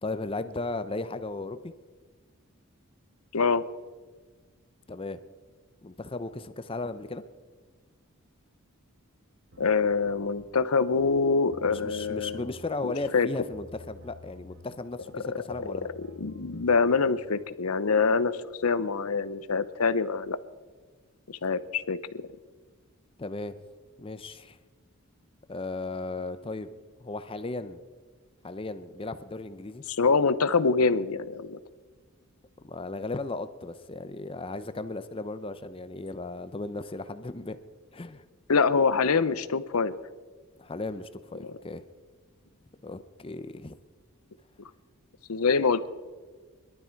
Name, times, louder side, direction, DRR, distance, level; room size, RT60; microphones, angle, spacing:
voice 1, 0.0-1.7 4.9-5.2 5.8-7.2 11.6-15.9 23.2-23.6 24.0-24.6 25.5-26.7 27.0-27.8 28.4-29.8 32.6-37.6 37.9-38.3 40.6-41.8 42.8-43.7, left 2 dB, 25° left, 12 dB, 0.6 m, -36 dB
voice 2, 3.3-3.6 9.6-12.5 12.8-13.3 15.6-15.7 15.9-20.4 21.3-22.3 29.9-31.6 38.5-40.0 41.4-41.6 45.3-45.9, left 4 dB, 90° left, 15 dB, 0.7 m, -25 dB
sound 1, 9.5-17.4, left 1 dB, 55° right, 1.4 m, -51 dB
22.5 x 12.0 x 4.5 m, 1.4 s
head